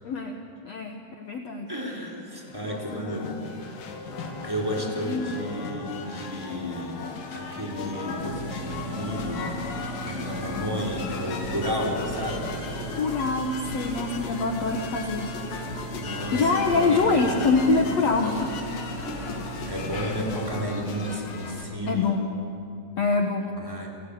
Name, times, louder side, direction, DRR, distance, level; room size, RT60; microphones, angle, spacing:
voice 1, 0.0-0.4 0.6-1.7 2.6-3.5 4.8-5.4 13.0-15.6 16.3-18.5 19.0-19.1 21.9-22.3 23.0-23.5, left 3 dB, 85° left, 3 dB, 1.4 m, -25 dB
voice 2, 1.7-3.3 4.4-7.0 7.3-12.6 16.0-17.6 19.7-22.1 23.5-23.9, equal, 5° right, -1 dB, 3.3 m, -32 dB
sound 1, 2.3-21.7, left 4 dB, 60° left, 3.4 m, -37 dB
sound 2, 6.1-12.1, left 8 dB, 50° right, 7.3 m, -44 dB
sound 3, 8.2-20.7, right 2 dB, 40° left, 1.0 m, -37 dB
28.5 x 18.5 x 8.4 m, 3.0 s
omnidirectional pair, 5.0 m